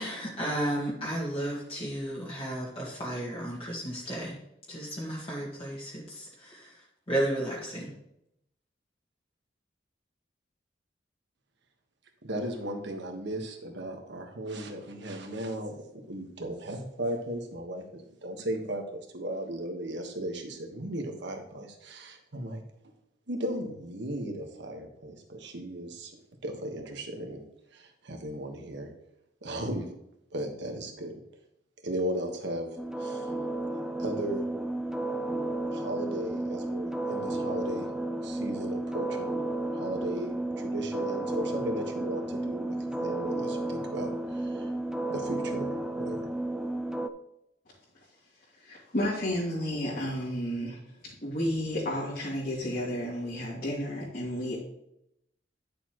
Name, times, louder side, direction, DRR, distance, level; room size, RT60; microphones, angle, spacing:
voice 1, 0.0-4.4 4.7-6.8 7.1-7.9, right 1 dB, 30° left, -6 dB, 2.0 m, -33 dB
voice 2, 12.2-22.6 23.3-26.1 26.4-27.4 27.7-28.9 29.4-29.9 30.3-31.1 31.8-32.7 33.0-33.3 33.7-34.4 35.7-37.9 38.2-39.4 39.7-42.8 43.0-44.7 45.1-46.3, right 1 dB, 65° right, 3 dB, 1.5 m, -36 dB
sound 1, 32.8-47.1, right 2 dB, 5° right, 0.5 m, -32 dB
voice 3, 48.6-50.8 51.2-54.6, equal, 50° left, -9 dB, 2.9 m, -31 dB
11.0 x 6.8 x 3.1 m, 0.80 s
head